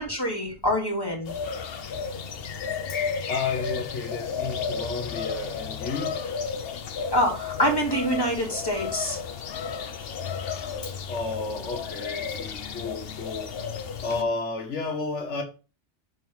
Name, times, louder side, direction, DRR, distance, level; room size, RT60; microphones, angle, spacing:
voice 1, 0.0-1.3 7.1-9.2, equal, 20° left, 3.0 m, -25 dB
sound 1, 1.2-14.2, left 6 dB, 60° left, 0.9 m, -33 dB
voice 2, 3.3-6.1 10.8-13.7 14.0-15.4, left 3 dB, 75° left, 1.5 m, -32 dB
6.1 x 4.7 x 5.5 m
omnidirectional pair, 1.2 m